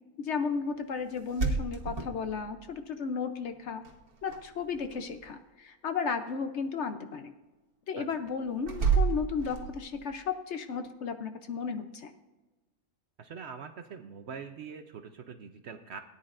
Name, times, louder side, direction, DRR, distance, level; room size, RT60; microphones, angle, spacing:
voice 1, 0.0-3.8 4.2-7.3 7.9-12.1, left 5 dB, 60° left, 8 dB, 0.9 m, -34 dB
sound 1, 1.2-2.7 3.8-4.4 4.7-5.2 8.6-10.0, right 5 dB, 80° right, 1.8 m, -30 dB
voice 2, 13.2-16.0, right 6 dB, 60° right, 8 dB, 0.8 m, -43 dB
18.0 x 9.5 x 2.5 m, 1.2 s
omnidirectional pair, 1.5 m